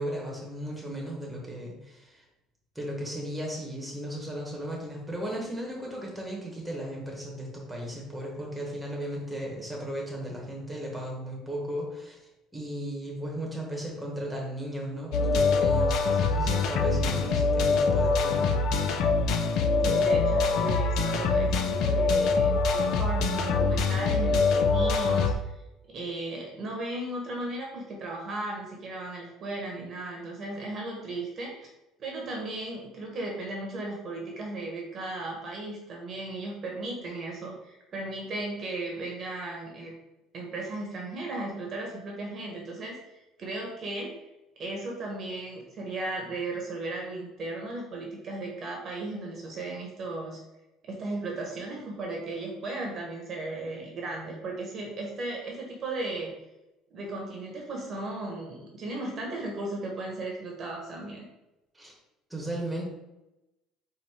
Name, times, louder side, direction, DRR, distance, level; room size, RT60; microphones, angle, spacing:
voice 1, 0.0-2.2 2.7-12.2 12.5-18.6 61.7-61.9 62.3-62.9, right 1 dB, 5° right, -2 dB, 1.3 m, -36 dB
sound 1, 15.1-25.3, left 4 dB, 65° left, 0.5 m, -24 dB
voice 2, 19.8-25.5 25.9-31.7 32.0-39.9 40.3-44.1 44.6-50.4 50.8-56.3 56.9-61.3, right 2 dB, 40° right, -1 dB, 1.0 m, -36 dB
4.2 x 2.7 x 4.6 m, 0.96 s
cardioid pair, 130°, 0 cm